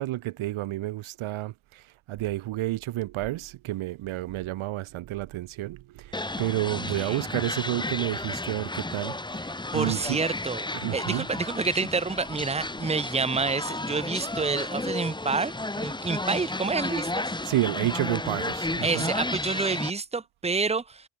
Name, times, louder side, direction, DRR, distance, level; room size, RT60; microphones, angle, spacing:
voice 1, 0.0-10.2 10.7-11.3 17.5-19.1, right 15 dB, 90° right, 2.3 m, -30 dB
sound 1, 6.1-19.9, left 2 dB, 10° left, 2.1 m, -33 dB
voice 2, 9.7-10.6 10.9-17.1 18.8-21.1, right 4 dB, 15° right, 1.0 m, -28 dB
cardioid pair, 110°, 47 cm